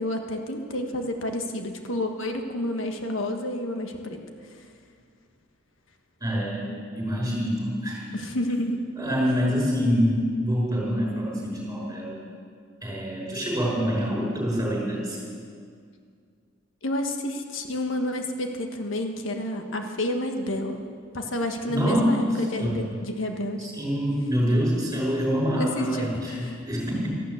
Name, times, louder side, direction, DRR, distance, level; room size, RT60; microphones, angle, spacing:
voice 1, 0.0-4.2 8.1-8.9 9.2-9.5 16.8-20.8 21.1-23.7 25.6-26.6, left 1 dB, 85° left, 4 dB, 1.5 m, -30 dB
voice 2, 6.2-8.0 9.0-12.2 12.8-15.2 21.7-22.1 22.6-23.0 23.6-27.1, equal, 15° right, -3 dB, 5.6 m, -26 dB
14.0 x 12.0 x 8.2 m, 2.1 s
head